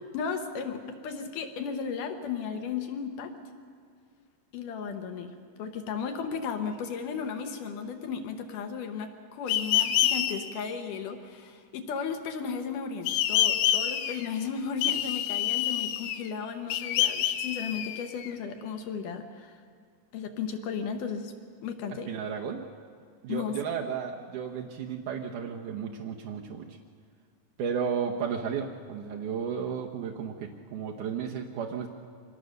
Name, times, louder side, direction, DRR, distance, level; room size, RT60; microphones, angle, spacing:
voice 1, 0.1-3.3 4.5-5.3 5.6-19.6 20.1-21.3 21.6-22.1 23.3-23.6, left 6 dB, 65° left, 6 dB, 2.2 m, -35 dB
sound 1, 9.5-10.3 13.1-14.3 14.8-16.3 16.7-18.3, left 11 dB, 85° left, 3.1 m, -27 dB
voice 2, 22.1-22.6 23.2-26.7 27.6-31.9, right 7 dB, 80° right, -1 dB, 1.8 m, -33 dB
25.0 x 19.5 x 6.5 m, 2.1 s
omnidirectional pair, 5.0 m